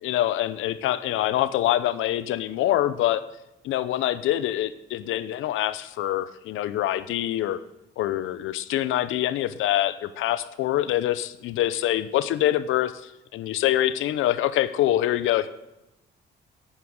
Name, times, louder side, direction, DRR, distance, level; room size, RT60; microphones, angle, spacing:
voice 1, 0.0-3.2 3.6-7.6 8.0-15.5, left 13 dB, 85° left, 14 dB, 0.7 m, -25 dB
11.0 x 9.0 x 6.4 m, 0.92 s
cardioid pair, 90°, 20 cm